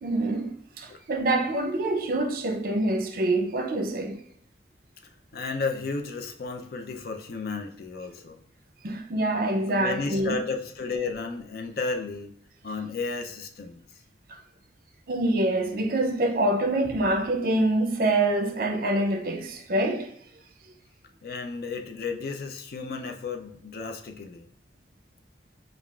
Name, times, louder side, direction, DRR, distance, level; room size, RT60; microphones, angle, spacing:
voice 1, 0.0-4.2 8.8-10.4 15.1-20.1, right 1 dB, 55° right, 0.5 m, -25 dB
voice 2, 5.3-8.4 9.8-12.3 12.6-13.8 21.2-24.4, left 4 dB, 55° left, 0.5 m, -33 dB
5.5 x 2.4 x 2.3 m
head